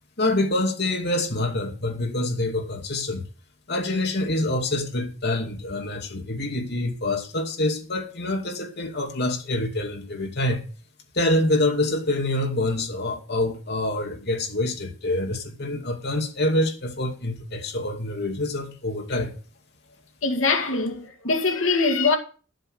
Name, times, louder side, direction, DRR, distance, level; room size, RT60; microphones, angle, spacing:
voice 1, 0.2-3.3 3.7-10.7 11.1-19.4, left 1 dB, 55° left, 2.4 m, -26 dB
voice 2, 20.2-22.2, left 3 dB, 80° left, 2.1 m, -22 dB
10.5 x 7.6 x 6.5 m
head